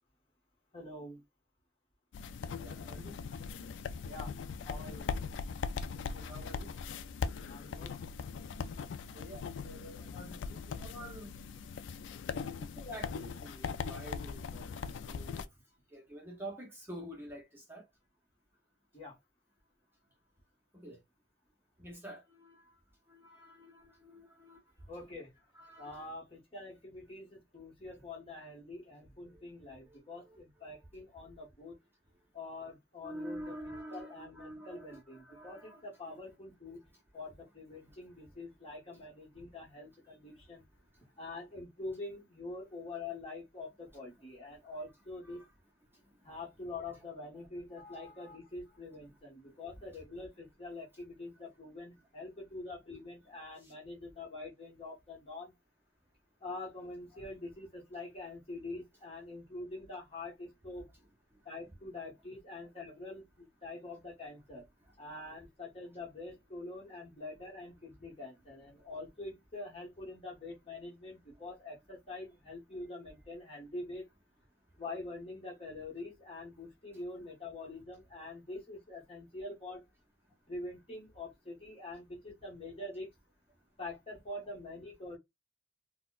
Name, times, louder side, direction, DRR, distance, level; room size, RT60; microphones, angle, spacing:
voice 1, 0.7-1.2 4.1-4.3 4.6-5.1 7.4-7.9 18.9-19.2 24.9-25.3 25.8-31.8 32.3-33.5 33.9-36.8 37.1-40.6 41.2-45.4 46.2-55.5 56.4-60.9 61.4-64.6 65.0-74.1 74.8-79.8 80.5-83.1 83.8-85.2, left 2 dB, 30° left, 1.2 m, -45 dB
sound 1, 2.1-15.4, left 5 dB, 90° left, 0.3 m, -40 dB
voice 2, 2.6-3.2 6.0-6.7 9.1-10.4 10.8-11.3 12.8-14.7 14.9-15.5 15.9-17.9 20.7-21.0 21.8-22.8 23.1-24.6 25.5-26.1 29.3-29.4 29.8-30.0 30.3-30.4 33.0-36.2 37.9-38.0 44.7-44.8 45.2-45.5 47.7-48.4 49.5-49.6 53.6-53.7 62.6-62.7, right 1 dB, 10° right, 0.8 m, -48 dB
4.1 x 2.2 x 2.3 m
head